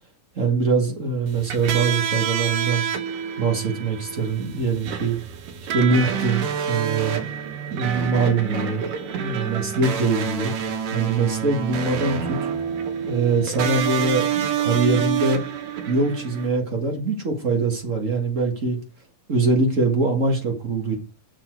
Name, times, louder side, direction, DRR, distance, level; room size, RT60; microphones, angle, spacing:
voice 1, 0.3-2.8 3.4-5.2 5.7-7.2 7.7-10.5 10.9-12.5 13.0-15.4 15.9-18.8 19.3-21.0, right 3 dB, 35° right, 2 dB, 1.2 m, -23 dB
sound 1, 1.3-16.5, right 8 dB, 90° right, 2.9 m, -28 dB
8.8 x 7.3 x 4.5 m, 0.35 s
omnidirectional pair, 3.7 m